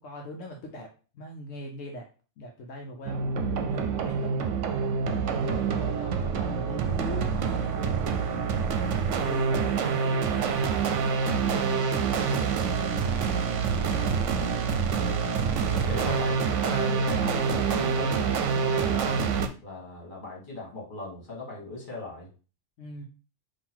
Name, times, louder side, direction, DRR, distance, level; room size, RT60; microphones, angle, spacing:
voice 1, 0.0-2.1 2.4-4.4 5.1-8.4 9.2-14.2 15.6-16.0 22.8-23.0, left 1 dB, 80° left, 1 dB, 1.1 m, -42 dB
sound 1, 3.1-19.5, right 5 dB, 75° right, 0.9 m, -26 dB
voice 2, 15.7-19.2 19.6-22.3, left 3 dB, 40° left, -3 dB, 1.9 m, -38 dB
3.7 x 2.8 x 4.4 m, 0.36 s
omnidirectional pair, 1.3 m